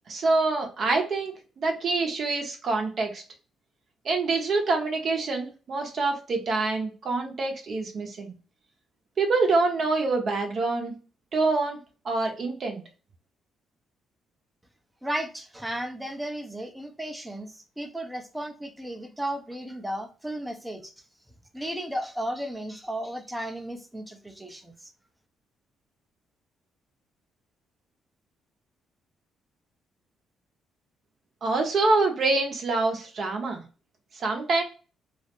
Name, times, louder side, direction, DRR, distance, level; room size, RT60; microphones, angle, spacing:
voice 1, 0.1-3.2 4.0-8.3 9.2-10.9 11.3-11.8 12.0-12.8 31.4-33.6 34.2-34.6, right 3 dB, 50° right, 0.7 m, -26 dB
voice 2, 15.0-20.9 21.5-24.9, right 1 dB, 10° right, 0.5 m, -34 dB
2.4 x 2.0 x 2.9 m
cardioid pair, 90°, 0 cm